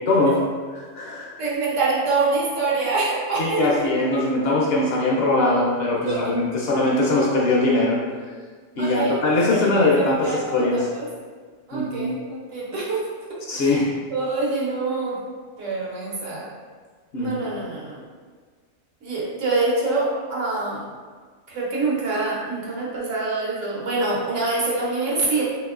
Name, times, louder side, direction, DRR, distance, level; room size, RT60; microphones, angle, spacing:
voice 1, 0.1-0.4 0.7-1.3 3.4-8.0 8.8-10.9 11.7-12.1 13.5-13.9 17.1-17.3, left 2 dB, 65° left, -3 dB, 0.7 m, -21 dB
voice 2, 1.4-4.3 6.1-6.2 8.8-11.1 11.7-13.0 13.5-13.8 14.1-15.2 15.6-16.4 17.2-18.0 19.0-20.8 21.5-25.4, right 3 dB, 75° right, -6 dB, 1.2 m, -25 dB
3.4 x 2.9 x 2.3 m, 1.5 s
omnidirectional pair, 1.3 m